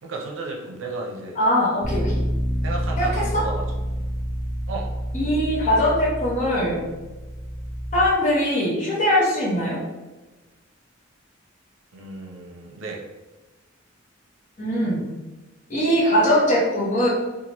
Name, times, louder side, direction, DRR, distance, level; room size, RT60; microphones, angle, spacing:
voice 1, 0.0-1.4 2.6-4.0 4.7-4.9 11.9-13.0, right 3 dB, 75° right, 0 dB, 0.6 m, -34 dB
voice 2, 1.4-2.2 3.0-3.4 5.1-6.8 7.9-9.8 14.6-15.1 15.7-17.1, equal, 40° left, -7 dB, 0.9 m, -21 dB
Bass guitar, 1.8-8.1, equal, ahead, 0.3 m, -28 dB
2.9 x 2.4 x 2.9 m, 1.2 s
head